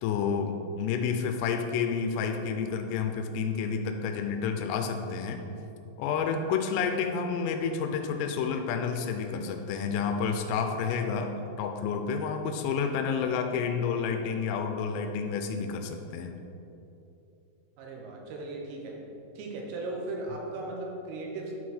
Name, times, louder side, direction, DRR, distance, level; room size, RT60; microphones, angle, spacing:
voice 1, 0.0-5.4 6.0-11.3 11.6-16.3, left 6 dB, 90° left, 5 dB, 3.2 m, -30 dB
voice 2, 17.8-19.0 19.4-21.5, right 2 dB, 85° right, -1 dB, 3.8 m, -37 dB
12.0 x 4.7 x 4.3 m, 2.9 s
omnidirectional pair, 5.8 m